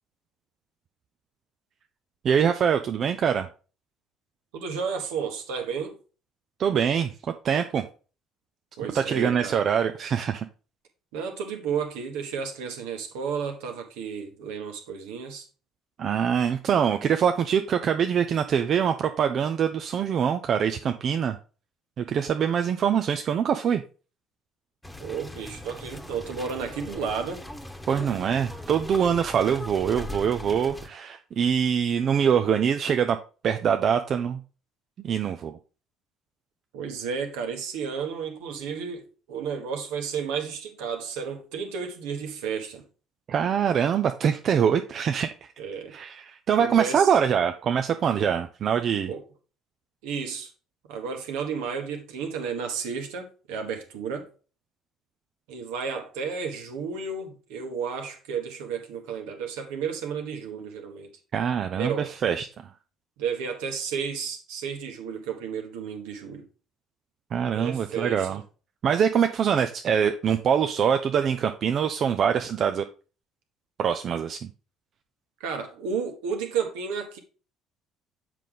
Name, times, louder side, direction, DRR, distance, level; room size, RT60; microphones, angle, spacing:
voice 1, 2.2-3.5 6.6-7.8 8.9-10.5 16.0-21.4 22.0-23.8 27.9-33.2 33.4-34.4 35.0-35.6 43.3-45.5 45.9-49.1 61.3-62.5 67.3-68.4 68.8-72.8 73.8-74.5, right 8 dB, 50° right, 0.6 m, -24 dB
voice 2, 4.5-6.0 8.8-9.6 11.1-15.5 25.0-27.4 36.7-42.9 45.6-46.0 46.6-47.1 48.2-48.3 49.1-49.2 50.0-50.5 50.9-54.3 55.5-61.1 61.7-62.1 63.2-66.5 67.5-68.4 75.4-77.2, right 6 dB, 70° right, 1.4 m, -32 dB
sound 1, 24.8-30.9, left 1 dB, 10° left, 1.2 m, -40 dB
7.5 x 5.2 x 3.7 m
hypercardioid pair, 55°, 0 cm